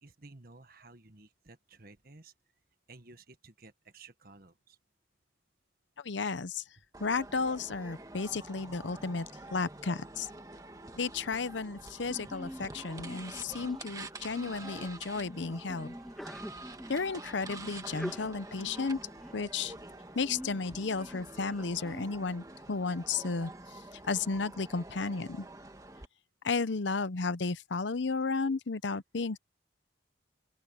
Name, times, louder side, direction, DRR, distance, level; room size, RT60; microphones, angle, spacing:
voice 1, 0.0-2.3 2.9-4.8, right 3 dB, 50° right, 1.6 m, -54 dB
voice 2, 6.0-6.6 7.0-10.3 11.0-16.0 16.9-19.0 19.3-19.7 20.1-23.5 24.1-25.5 26.4-29.4, left 4 dB, 75° left, 0.8 m, -33 dB
sound 1, 6.9-26.0, right 2 dB, 20° right, 1.7 m, -47 dB
Sneeze, 12.1-22.0, equal, ahead, 2.3 m, -47 dB
open air
head